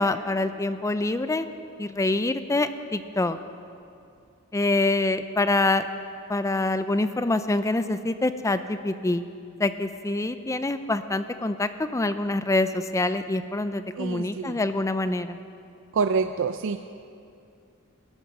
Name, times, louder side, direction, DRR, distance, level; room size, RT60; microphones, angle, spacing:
voice 1, 0.0-1.5 1.8-3.4 4.5-5.8 6.3-9.2 9.6-15.4, left 2 dB, 15° left, 11 dB, 0.4 m, -25 dB
voice 2, 14.0-14.6 15.9-16.8, right 5 dB, 65° right, 9 dB, 0.4 m, -26 dB
17.5 x 13.5 x 5.4 m, 2.5 s
head